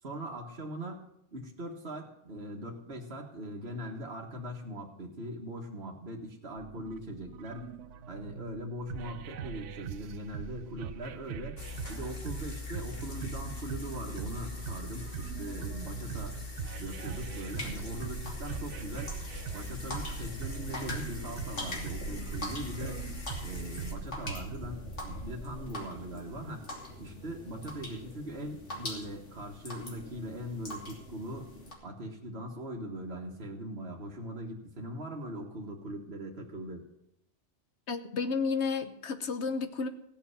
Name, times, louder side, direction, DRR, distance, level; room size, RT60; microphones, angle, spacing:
voice 1, 0.0-7.7 8.1-11.6 11.9-16.4 16.8-19.1 19.5-23.0 23.4-26.6 27.0-31.5 31.8-36.8, equal, 60° right, -1 dB, 1.8 m, -41 dB
sound 1, 6.6-24.6, right 9 dB, 85° right, 1.0 m, -42 dB
sound 2, 11.6-23.9, left 3 dB, 55° left, 2.3 m, -42 dB
sound 3, 17.5-31.7, left 1 dB, 85° left, 3.2 m, -42 dB
voice 2, 37.9-39.9, left 5 dB, 70° left, 9 dB, 1.3 m, -31 dB
16.0 x 5.5 x 9.8 m, 0.80 s
omnidirectional pair, 1.2 m